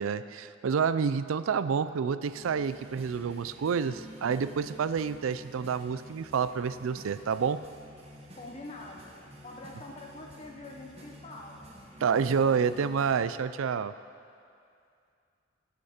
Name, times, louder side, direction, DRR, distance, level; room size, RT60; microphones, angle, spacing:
voice 1, 0.0-7.6 12.0-13.9, right 6 dB, 85° right, 14 dB, 0.4 m, -28 dB
sound 1, 2.3-13.3, equal, 30° right, 1.2 m, -50 dB
voice 2, 8.4-9.1 9.4-11.7, left 2 dB, 30° left, 1 dB, 0.8 m, -45 dB
15.0 x 8.4 x 4.3 m, 2.4 s
head